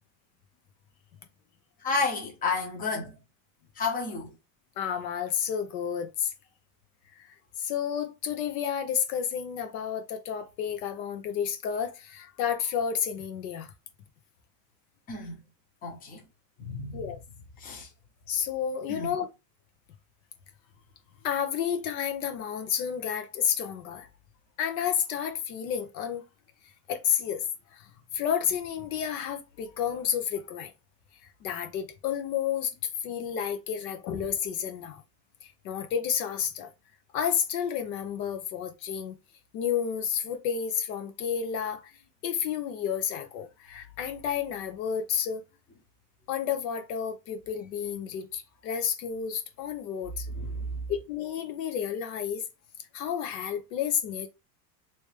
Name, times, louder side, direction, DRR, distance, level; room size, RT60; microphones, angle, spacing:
voice 1, 1.8-3.2 3.7-4.4 15.1-15.4 15.8-16.2 16.6-17.1 17.6-17.9 18.9-19.1 50.3-50.9, left 3 dB, 15° left, 0.9 m, -32 dB
voice 2, 4.8-6.3 7.2-13.7 16.9-17.2 18.3-19.3 21.2-24.1 24.6-26.2 26.9-27.4 27.7-27.9 28.1-30.7 31.4-32.7 33.0-35.0 35.4-36.7 37.1-39.2 39.5-41.9 42.2-45.4 46.3-50.3 50.9-52.4 52.9-54.3, left 8 dB, 85° left, 1.2 m, -31 dB
3.4 x 3.0 x 3.3 m
supercardioid pair, 155°, 49 cm